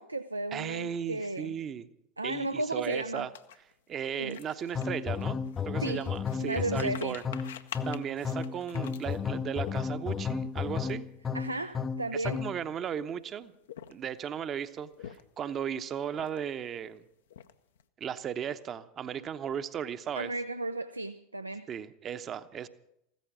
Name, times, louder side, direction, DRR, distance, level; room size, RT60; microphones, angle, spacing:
voice 1, 0.0-1.6 2.2-3.3 4.2-4.4 5.8-6.1 6.4-7.2 11.3-12.4 20.1-21.7, right 2 dB, 85° right, 0.5 m, -34 dB
voice 2, 0.5-1.9 2.2-3.3 3.9-5.4 5.7-7.2 7.9-11.1 12.1-13.5 13.9-17.0 18.0-20.3 21.7-22.7, right 8 dB, 30° right, 0.9 m, -36 dB
sound 1, 3.3-10.2 10.8-10.9 11.2-11.4 12.1-12.9 13.5-14.3 14.8-15.5 16.1-16.7 17.0-17.8, left 10 dB, 65° left, 0.7 m, -48 dB
sound 2, 4.7-12.6, left 6 dB, 20° left, 0.6 m, -33 dB
15.5 x 13.5 x 6.1 m
figure-of-eight pair, 80°, 0 cm